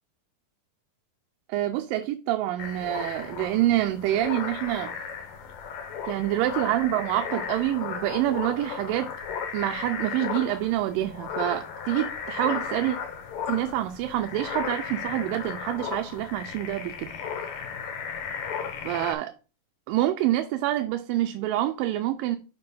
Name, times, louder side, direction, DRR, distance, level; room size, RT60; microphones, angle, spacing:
voice 1, 1.5-5.0 6.1-9.1 9.5-13.0 13.5-17.1 18.9-19.3 19.9-22.4, right 14 dB, 85° right, 2.3 m, -27 dB
sound 1, 2.6-19.1, left 6 dB, 65° left, 1.9 m, -35 dB
6.7 x 3.8 x 5.6 m
omnidirectional pair, 3.9 m